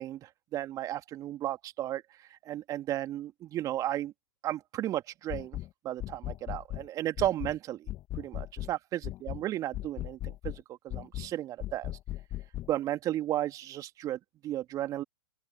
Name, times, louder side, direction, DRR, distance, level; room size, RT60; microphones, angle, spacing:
voice 1, 0.0-2.0 2.3-4.1 4.4-5.6 5.8-11.9 12.7-15.0, right 13 dB, 30° right, 2.8 m, -34 dB
sound 1, 5.3-5.7 6.0-6.9 7.2-7.6 7.9-8.7 9.0-9.4 9.7-10.6 10.9-11.3 11.6-12.7, left 15 dB, 30° left, 1.6 m, -37 dB
open air
figure-of-eight pair, 110°, 12 cm